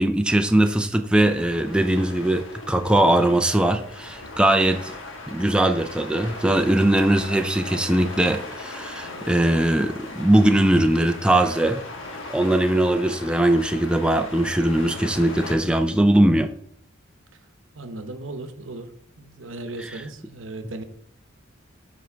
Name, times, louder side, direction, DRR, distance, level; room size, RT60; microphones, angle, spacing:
voice 1, 0.0-4.9 5.3-11.8 12.3-16.5 19.8-20.0, right 1 dB, 5° right, 0.4 m, -20 dB
sound 1, 1.2-15.5, left 2 dB, 85° left, 1.4 m, -38 dB
voice 2, 17.8-18.9 19.2-20.8, right 2 dB, 85° right, 0.9 m, -36 dB
7.3 x 4.5 x 4.5 m
head